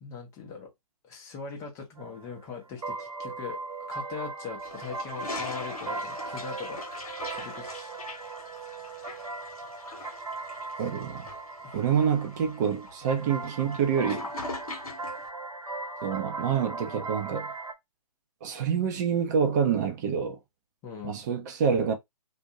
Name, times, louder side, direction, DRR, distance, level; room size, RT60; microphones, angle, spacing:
voice 1, 0.0-0.7 1.0-6.9 7.3-7.9 11.6-11.8 14.1-14.2 20.8-21.2, left 6 dB, 15° left, 0.6 m, -41 dB
sound 1, 2.0-17.7, right 3 dB, 70° right, 1.0 m, -38 dB
Toilet flush, 4.6-15.3, left 2 dB, 65° left, 1.0 m, -42 dB
voice 2, 10.8-11.3 11.7-14.3 16.0-17.5 18.4-20.4 21.0-21.9, right 7 dB, 30° right, 0.6 m, -27 dB
2.6 x 2.1 x 2.7 m
figure-of-eight pair, 130°, 19 cm